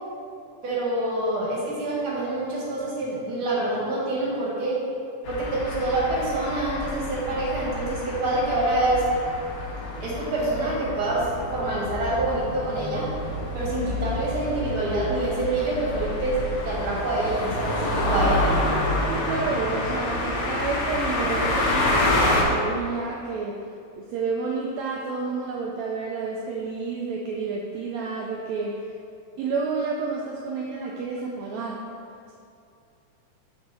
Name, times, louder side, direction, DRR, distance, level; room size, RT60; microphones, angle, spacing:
voice 1, 0.6-4.8 5.3-9.0 10.0-11.2 11.5-13.1 13.5-17.8 18.0-18.6, right 2 dB, 50° right, -6 dB, 1.9 m, -26 dB
sound 1, 5.2-22.4, left 1 dB, 85° left, 1.2 m, -28 dB
voice 2, 19.1-23.6 24.0-28.9 29.4-31.8, right 4 dB, 80° right, -1 dB, 1.6 m, -30 dB
7.0 x 4.2 x 4.7 m, 2.5 s
omnidirectional pair, 3.6 m